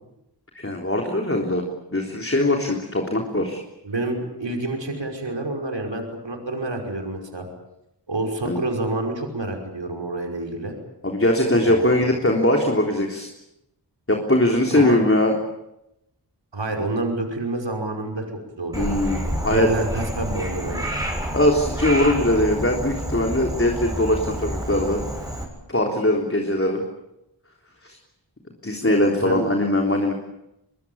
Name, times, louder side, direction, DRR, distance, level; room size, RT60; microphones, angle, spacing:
voice 1, 0.5-1.6 1.9-3.6 8.5-8.6 11.0-13.3 14.1-15.4 18.8-19.7 21.3-25.0 25.7-26.8 27.8-28.0 28.6-30.1, left 1 dB, 30° left, 1 dB, 3.6 m, -21 dB
voice 2, 3.8-7.5 8.1-10.7 11.6-11.9 14.7-15.0 16.5-18.2 18.6-18.9 19.5-20.8 29.2-29.4, right 2 dB, 85° right, 2 dB, 5.6 m, -28 dB
Frog, 18.7-25.4, right 1 dB, 10° right, 7.2 m, -29 dB
25.0 x 22.0 x 8.8 m, 0.86 s
wide cardioid pair, 60°, 42 cm